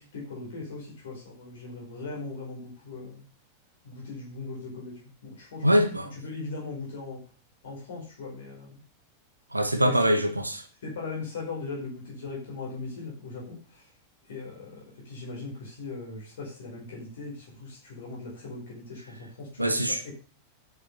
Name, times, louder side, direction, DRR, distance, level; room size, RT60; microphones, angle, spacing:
voice 1, 0.0-3.2 3.8-5.7 6.1-7.3 7.6-8.8 9.8-10.1 10.8-14.0 14.2-20.1, left 3 dB, 60° left, 5.2 m, -39 dB
voice 2, 5.6-6.1 9.5-10.6 19.6-20.0, equal, 85° right, 1.4 m, -23 dB
10.5 x 7.7 x 6.8 m
figure-of-eight pair, 90°, 0 cm